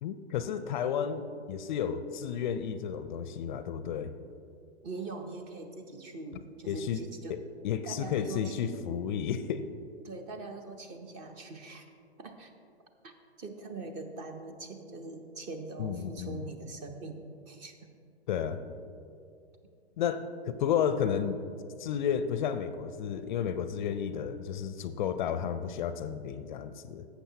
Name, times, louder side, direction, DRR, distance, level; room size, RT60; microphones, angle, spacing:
voice 1, 0.0-4.1 6.7-7.0 7.3-7.4 7.6-9.6 15.8-16.4 18.3-18.6 20.0-21.4 21.8-27.1, left 8 dB, 45° left, 11 dB, 0.4 m, -32 dB
voice 2, 4.8-7.4 7.8-8.5 10.0-11.9 12.2-12.5 13.0-13.1 13.4-17.9 21.0-21.2, right 3 dB, 25° right, 6 dB, 0.6 m, -42 dB
12.0 x 8.1 x 2.8 m, 2.4 s
hypercardioid pair, 130°, 33 cm